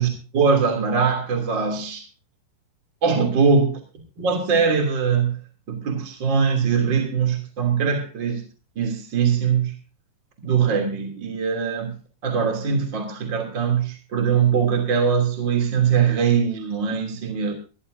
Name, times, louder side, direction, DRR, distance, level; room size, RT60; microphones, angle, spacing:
voice 1, 0.0-2.0 3.0-3.7 4.2-5.4 5.7-8.4 8.7-9.7 10.4-11.9 12.2-17.5, right 6 dB, 30° right, 3 dB, 3.0 m, -21 dB
20.5 x 15.0 x 2.7 m, 0.36 s
omnidirectional pair, 5.2 m